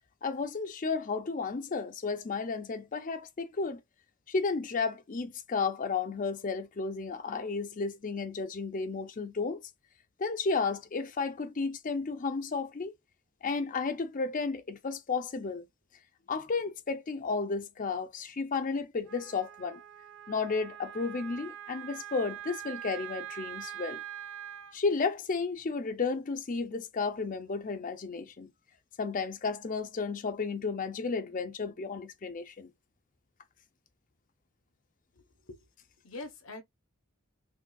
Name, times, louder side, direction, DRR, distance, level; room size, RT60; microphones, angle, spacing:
voice 1, 0.2-3.8 4.3-9.6 10.2-12.9 13.4-15.6 16.3-19.8 20.3-24.0 24.7-28.5 29.0-32.7, left 4 dB, 40° left, 0.5 m, -33 dB
Wind instrument woodwind instrument, 19.1-24.8, right 12 dB, 65° right, 0.6 m, -43 dB
voice 2, 35.1-35.6 36.0-36.6, left 2 dB, 65° left, 1.0 m, -44 dB
6.0 x 2.4 x 2.3 m
head